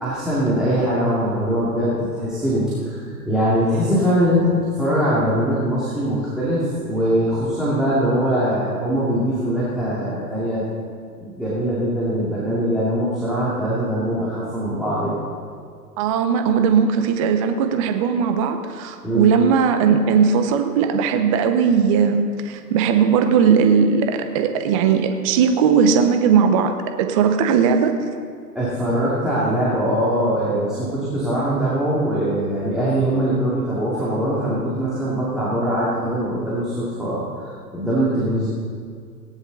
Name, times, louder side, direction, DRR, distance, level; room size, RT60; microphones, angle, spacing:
voice 1, 0.0-10.6 11.2-15.2 19.0-19.3 28.5-38.5, equal, ahead, -10 dB, 2.3 m, -22 dB
voice 2, 16.0-28.0, right 6 dB, 20° right, 7 dB, 0.5 m, -18 dB
17.5 x 10.0 x 3.9 m, 2.1 s
hypercardioid pair, 135°, 49 cm